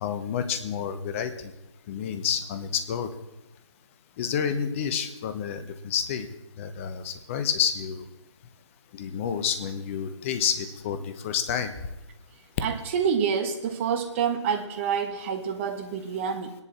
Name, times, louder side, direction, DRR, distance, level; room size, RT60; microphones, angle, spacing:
voice 1, 0.0-1.3 1.9-3.1 4.2-6.3 6.6-8.0 8.9-11.7, left 8 dB, 25° left, 9 dB, 1.0 m, -29 dB
voice 2, 12.6-16.5, right 7 dB, 25° right, 6 dB, 1.4 m, -27 dB
24.5 x 11.0 x 4.3 m, 0.93 s
figure-of-eight pair, 145°, 15 cm